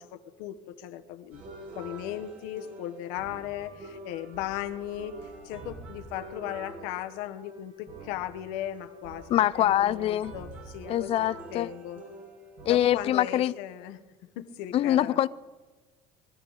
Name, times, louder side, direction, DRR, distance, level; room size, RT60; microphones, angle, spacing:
voice 1, 0.0-1.4 1.7-11.1 11.5-12.0 12.7-14.0 14.4-15.2, left 12 dB, 85° left, 1.0 m, -37 dB
sound 1, 1.3-12.8, right 1 dB, 70° right, 5.8 m, -45 dB
voice 2, 9.3-10.3 10.9-11.7 12.7-13.5 14.7-15.3, left 12 dB, 45° left, 0.5 m, -24 dB
21.5 x 13.0 x 4.0 m
cardioid pair, 125°, 14 cm